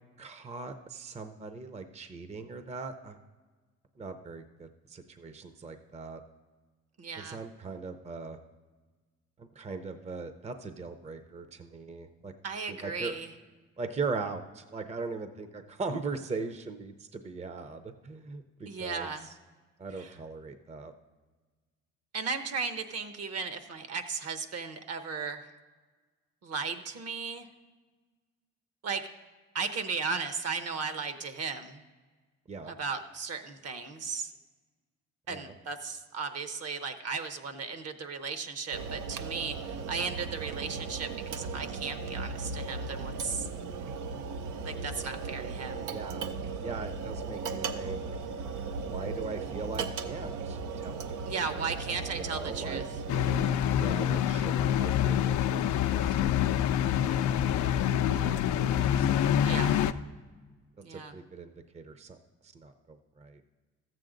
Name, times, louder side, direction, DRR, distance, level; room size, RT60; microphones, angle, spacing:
voice 1, 0.2-3.2 4.0-6.2 7.2-8.4 9.4-12.3 12.7-13.1 13.8-19.3 19.8-20.9 32.5-32.7 35.3-35.5 45.7-46.3 46.6-48.0 48.9-51.3 51.5-51.7 52.1-52.8 53.8-57.2 58.1-59.3 59.7-59.8 60.9-62.2 62.4-63.4, right 4 dB, 20° right, 9 dB, 0.6 m, -40 dB
voice 2, 7.0-7.4 12.4-13.3 18.7-19.3 20.0-20.1 22.1-25.5 26.4-27.5 28.8-29.1 29.5-31.8 32.7-34.3 35.3-43.5 44.6-45.9 51.3-52.8 59.4-59.7 60.8-61.1, right 5 dB, 55° right, 9 dB, 0.9 m, -36 dB
sound 1, 38.7-53.5, right 4 dB, 90° right, 0.6 m, -37 dB
sound 2, 53.1-59.9, left 10 dB, 75° left, 0.5 m, -26 dB
13.5 x 7.7 x 3.8 m, 1.3 s
cardioid pair, 90°, 30 cm